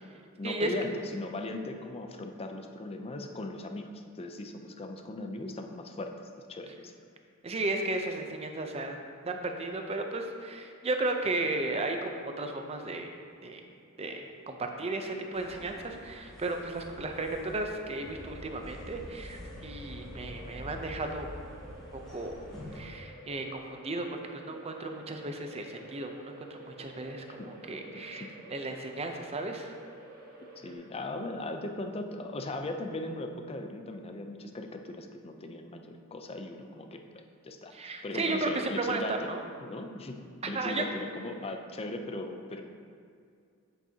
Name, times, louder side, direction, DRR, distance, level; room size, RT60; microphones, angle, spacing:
voice 1, 0.4-6.1 6.5-6.9 27.4-27.5 27.9-28.3 30.6-39.3 39.6-40.2 40.5-42.6, left 2 dB, 30° left, 5 dB, 0.5 m, -38 dB
voice 2, 7.4-9.0 9.3-13.1 13.4-13.6 14.0-21.3 21.6-21.8 22.1-22.4 22.7-24.1 24.4-29.8 37.7-39.4 40.4-40.8, right 2 dB, 30° right, 4 dB, 0.6 m, -34 dB
sound 1, 15.3-22.8, left 1 dB, 5° left, 1.5 m, -46 dB
sound 2, 16.8-30.7, right 2 dB, 50° right, 1.4 m, -51 dB
8.0 x 7.3 x 2.8 m, 2.3 s
head